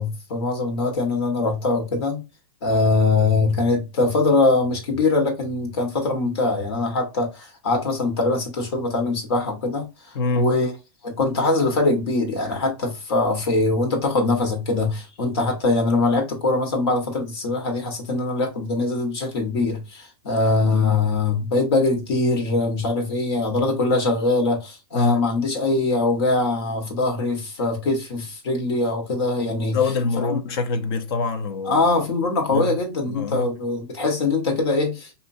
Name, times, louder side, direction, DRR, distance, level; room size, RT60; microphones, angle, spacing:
voice 1, 0.0-2.2 2.6-10.7 11.0-29.8 30.2-30.4 31.6-35.1, left 3 dB, 75° left, 1.5 m, -22 dB
voice 2, 10.1-10.5 20.7-21.0 24.9-25.2 29.7-31.8 32.5-32.7 33.1-33.5, left 3 dB, 60° left, 0.8 m, -25 dB
4.4 x 2.8 x 2.6 m
supercardioid pair, 155°, 13 cm